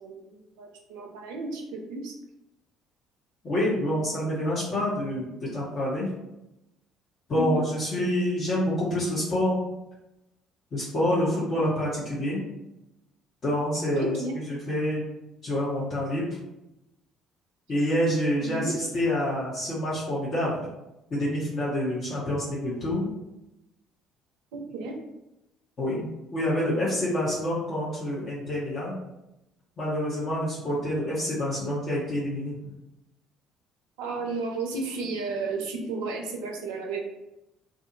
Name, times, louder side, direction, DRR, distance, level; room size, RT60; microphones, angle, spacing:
voice 1, 0.0-2.1 7.3-7.6 11.5-11.6 13.9-14.4 18.4-18.8 24.5-24.9 34.0-37.0, right 3 dB, 65° right, 2 dB, 0.4 m, -33 dB
voice 2, 3.4-5.3 5.5-6.1 7.3-9.6 10.7-12.4 13.4-15.0 15.4-16.3 17.7-20.6 21.1-23.1 25.8-26.1 26.3-29.0 29.8-32.5, left 1 dB, 40° left, -7 dB, 0.8 m, -27 dB
2.5 x 2.4 x 2.6 m, 0.91 s
figure-of-eight pair, 50°, 0 cm